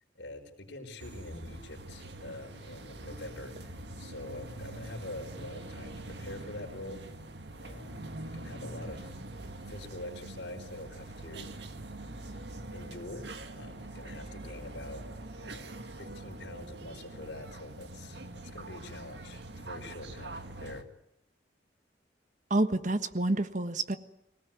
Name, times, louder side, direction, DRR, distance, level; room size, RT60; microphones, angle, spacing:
voice 1, 0.1-7.0 7.5-8.0 8.3-9.1 9.7-11.6 12.7-15.0 15.3-20.9, left 1 dB, 75° left, 3 dB, 4.8 m, -45 dB
sound 1, 1.0-20.8, right 2 dB, 70° right, 1.8 m, -44 dB
voice 2, 22.5-24.0, right 2 dB, 40° right, 10 dB, 1.4 m, -28 dB
24.5 x 18.0 x 9.4 m, 0.84 s
head